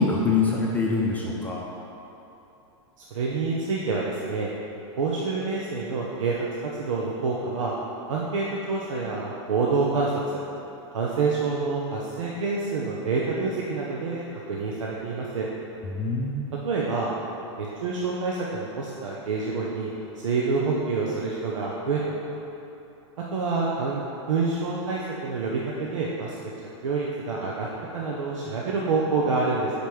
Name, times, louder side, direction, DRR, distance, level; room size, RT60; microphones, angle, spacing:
voice 1, 0.0-1.6 15.9-16.4, left 4 dB, 10° left, -4 dB, 0.6 m, -24 dB
voice 2, 3.0-4.5 5.0-7.7 8.1-10.1 10.9-15.5 16.6-17.1 17.6-22.0 23.3-26.4 26.8-27.7 27.9-29.7, right 4 dB, 90° right, -4 dB, 0.9 m, -27 dB
5.2 x 5.0 x 6.0 m, 2.9 s
supercardioid pair, 140°, 16 cm